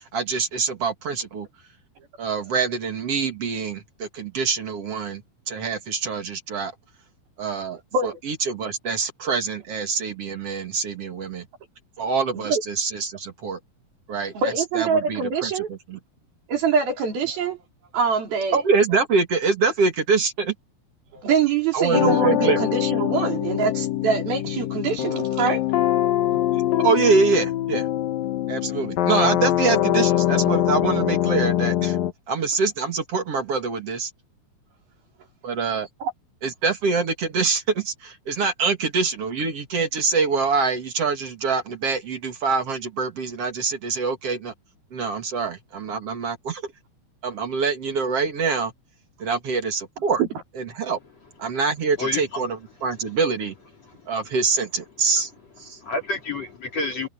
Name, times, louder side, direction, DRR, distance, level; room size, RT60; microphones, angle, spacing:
voice 1, 0.0-1.5 2.2-5.2 5.5-6.7 7.4-11.5 12.0-13.6 14.1-16.0 18.5-20.5 21.7-22.6 26.5-27.9 28.5-32.0 32.3-34.1 35.4-35.9 36.4-44.5 44.9-46.6 47.2-48.7 49.2-50.2 50.6-51.0 51.4-53.5 54.1-55.3 55.6-55.8, right 4 dB, 45° right, 2.8 m, -25 dB
voice 2, 14.3-15.7 16.5-17.6 17.9-18.6 21.1-25.6 26.3-26.4 36.0-36.1 50.2-50.3, right 5 dB, 80° right, 6.0 m, -24 dB
sound 1, 21.9-32.1, left 13 dB, 70° left, 3.0 m, -23 dB
voice 3, 52.0-52.4 53.8-54.1 55.7-57.1, left 3 dB, 45° left, 4.5 m, -29 dB
omnidirectional pair, 4.2 m